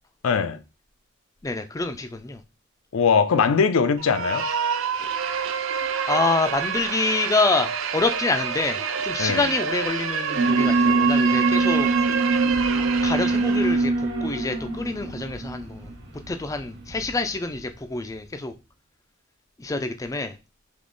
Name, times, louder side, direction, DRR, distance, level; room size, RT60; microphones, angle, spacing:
voice 1, 0.2-0.6 2.9-4.4 9.2-9.4, left 6 dB, 80° left, 0.5 m, -21 dB
voice 2, 1.4-2.4 6.1-12.2 13.0-15.9 16.3-18.5 19.6-20.3, left 3 dB, 15° left, 0.3 m, -27 dB
sound 1, 4.0-13.8, right 7 dB, 70° right, 0.5 m, -27 dB
Alarm, 10.3-17.5, right 3 dB, 50° right, 1.1 m, -24 dB
3.6 x 2.9 x 3.8 m
head